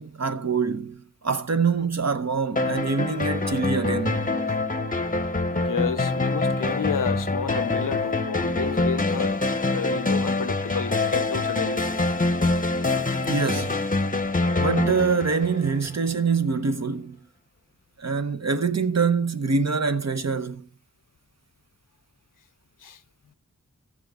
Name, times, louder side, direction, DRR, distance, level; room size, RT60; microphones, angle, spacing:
voice 1, 0.0-4.3 13.3-13.8 14.6-17.2 18.0-20.7, right 5 dB, 50° right, 0.9 m, -25 dB
sound 1, 2.6-16.1, left 2 dB, 25° left, 0.8 m, -25 dB
voice 2, 5.5-9.4 9.7-11.9 22.8-23.0, left 7 dB, 70° left, 0.6 m, -31 dB
15.0 x 7.4 x 3.7 m
wide cardioid pair, 50°, 33 cm